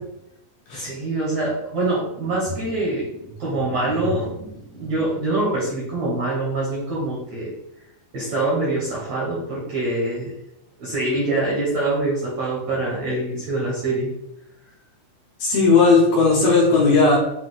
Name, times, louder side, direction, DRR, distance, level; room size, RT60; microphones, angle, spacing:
voice 1, 0.7-7.5 8.1-10.3 10.8-14.1, right 2 dB, 70° right, -5 dB, 1.6 m, -25 dB
voice 2, 15.4-17.2, left 4 dB, 75° left, -4 dB, 2.1 m, -16 dB
8.3 x 2.9 x 3.9 m, 0.83 s
omnidirectional pair, 5.6 m